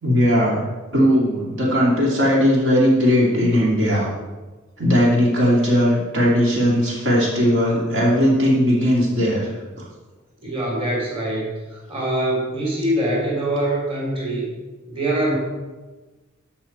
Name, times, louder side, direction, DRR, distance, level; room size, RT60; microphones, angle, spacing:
voice 1, 0.0-0.6 0.9-4.1 4.8-9.5, equal, 60° right, -5 dB, 2.7 m, -18 dB
voice 2, 10.4-14.5 14.9-15.4, right 1 dB, 30° right, -3 dB, 2.9 m, -24 dB
15.0 x 5.9 x 4.5 m, 1.2 s
head